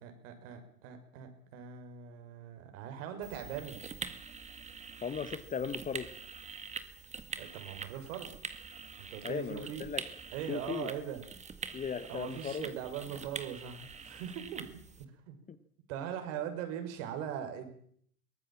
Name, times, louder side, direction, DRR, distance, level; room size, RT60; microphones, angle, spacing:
voice 1, 0.0-3.8 7.4-8.3 9.0-9.9 10.3-11.2 12.1-14.7 15.0-15.3 15.9-17.7, right 9 dB, 55° right, 6 dB, 6.2 m, -41 dB
sound 1, 3.2-15.0, right 5 dB, 15° right, 1.9 m, -45 dB
voice 2, 5.0-6.1 9.2-10.0 10.5-10.9 11.7-12.7 15.5-15.6, left 7 dB, 15° left, 13 dB, 1.2 m, -37 dB
23.0 x 19.0 x 7.5 m, 0.62 s
hypercardioid pair, 100°, 45 cm